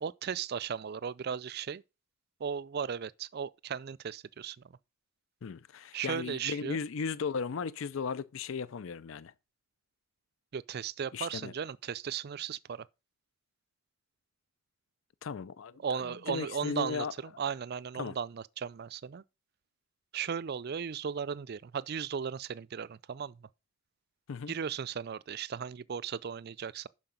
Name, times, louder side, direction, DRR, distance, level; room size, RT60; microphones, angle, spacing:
voice 1, 0.0-1.8 2.4-4.8 5.9-6.8 10.5-12.9 15.8-19.2 20.1-23.5 24.5-26.9, right 7 dB, 50° right, 0.4 m, -36 dB
voice 2, 5.4-9.3 11.1-11.5 15.2-16.0 16.3-17.1 18.0-18.1 24.3-24.5, left 5 dB, 65° left, 0.4 m, -36 dB
11.5 x 4.8 x 5.2 m
head